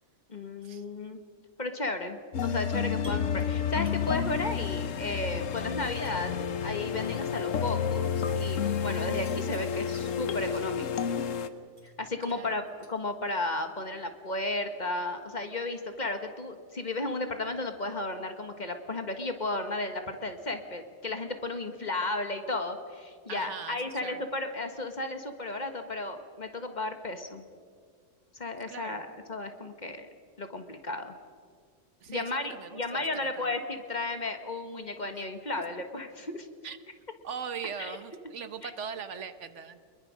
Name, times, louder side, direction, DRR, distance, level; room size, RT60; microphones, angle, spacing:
voice 1, 0.3-1.2 1.6-6.4 6.6-11.1 12.0-27.4 28.3-30.1 30.4-31.1 32.1-36.5 37.8-37.9 38.6-38.7, left 2 dB, 35° left, 7 dB, 1.5 m, -34 dB
sound 1, 2.3-11.5, left 7 dB, 90° left, 1.3 m, -30 dB
sound 2, 2.9-5.1 5.4-10.1 10.5-13.6, right 2 dB, 25° right, 2.7 m, -58 dB
voice 2, 12.2-12.6 23.3-24.3 28.7-29.0 32.0-33.5 35.1-35.3 36.6-36.8 37.2-39.8, right 6 dB, 70° right, 11 dB, 1.3 m, -40 dB
25.0 x 21.5 x 6.3 m, 2.1 s
omnidirectional pair, 1.3 m